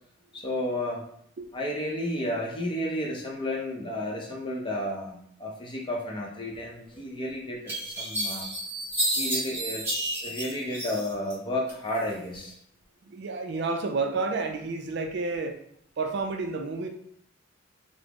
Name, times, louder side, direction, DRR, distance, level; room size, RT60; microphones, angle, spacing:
voice 1, 0.3-1.0 1.5-8.5 9.1-9.8 10.2-12.5, left 1 dB, 25° left, -2 dB, 0.6 m, -32 dB
sound 1, 6.9-7.0 7.7-11.3 11.7-12.4, right 1 dB, 10° right, 0.8 m, -31 dB
voice 2, 13.1-15.6 16.0-16.9, right 3 dB, 50° right, 5 dB, 0.4 m, -30 dB
3.5 x 2.0 x 3.4 m, 0.69 s
head